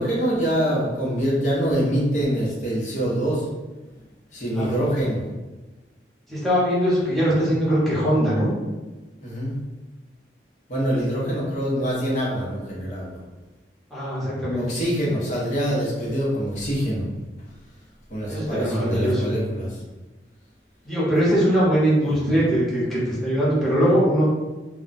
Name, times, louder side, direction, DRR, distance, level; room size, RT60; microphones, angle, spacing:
voice 1, 0.0-3.5 4.3-5.2 9.2-9.6 10.7-13.1 14.5-17.1 18.1-19.8, equal, 45° left, -5 dB, 0.9 m, -24 dB
voice 2, 6.3-8.5 13.9-14.6 18.3-19.2 20.8-24.2, equal, ahead, -10 dB, 1.0 m, -21 dB
2.3 x 2.2 x 3.9 m, 1.2 s
head